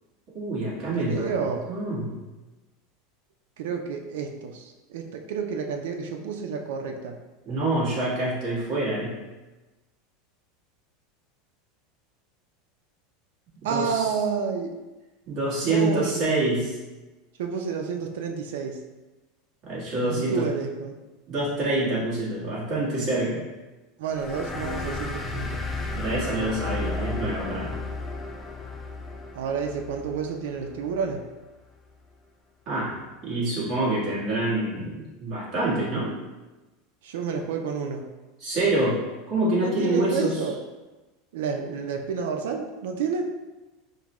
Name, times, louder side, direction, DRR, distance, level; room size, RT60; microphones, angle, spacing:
voice 1, 0.3-1.3 1.7-2.2 7.4-9.2 13.7-14.0 15.3-16.7 19.7-20.5 21.3-23.4 25.9-27.8 32.7-32.9 33.2-36.1 38.4-39.0 39.3-40.4, right 2 dB, 35° right, -6 dB, 1.4 m, -26 dB
voice 2, 1.0-1.7 3.6-7.2 13.6-14.7 15.6-16.3 17.4-18.8 20.1-21.0 24.0-25.9 29.3-31.2 37.0-38.0 39.6-40.6 41.3-43.2, right 6 dB, 85° right, 3 dB, 0.4 m, -30 dB
sound 1, 24.1-31.2, left 3 dB, 10° left, 0.3 m, -34 dB
4.8 x 2.2 x 3.0 m, 1.1 s
supercardioid pair, 160°, 0 cm